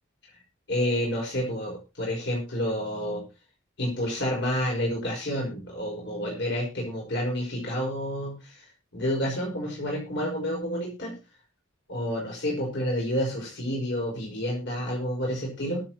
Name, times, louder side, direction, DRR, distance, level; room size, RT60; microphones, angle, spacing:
voice 1, 0.7-3.2 3.8-8.7 8.9-11.1 11.9-15.8, equal, 60° left, -1 dB, 5.1 m, -29 dB
22.0 x 7.9 x 3.0 m, 0.29 s
head